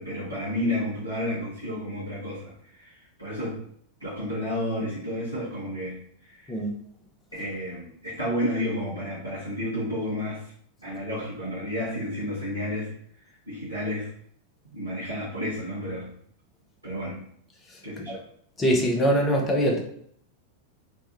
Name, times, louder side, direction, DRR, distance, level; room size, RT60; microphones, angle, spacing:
voice 1, 0.0-2.5 2.8-2.9 3.2-3.6 4.0-6.0 6.3-6.4 7.4-10.4 10.8-12.9 13.5-14.1 14.7-16.1 16.8-17.2 17.8-18.2, left 1 dB, 90° right, -10 dB, 1.0 m, -31 dB
voice 2, 18.6-19.8, equal, 20° left, 0 dB, 0.7 m, -22 dB
3.2 x 2.2 x 3.0 m, 0.65 s
figure-of-eight pair, 90°, 0 cm